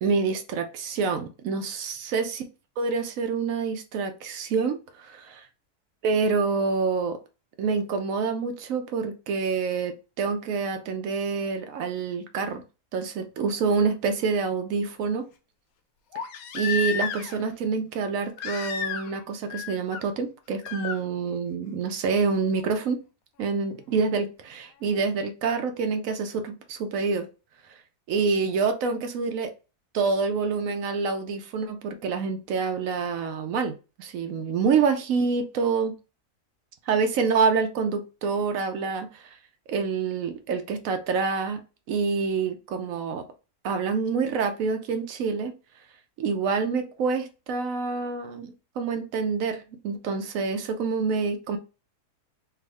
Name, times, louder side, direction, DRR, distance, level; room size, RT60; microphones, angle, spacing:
voice 1, 0.0-2.4 2.8-5.4 6.0-7.2 7.6-12.6 12.9-15.2 16.5-23.0 23.4-27.3 28.1-29.5 29.9-35.9 36.9-39.3 39.7-41.6 41.9-43.2 43.6-45.5 46.2-51.6, right 5 dB, 70° right, 0.8 m, -27 dB
Crying sobbing, 13.4-13.5 16.1-17.5 18.4-19.2 19.5-20.0 20.6-21.0 22.6-22.7, left 8 dB, 70° left, 0.9 m, -32 dB
3.5 x 2.4 x 3.3 m
omnidirectional pair, 1.7 m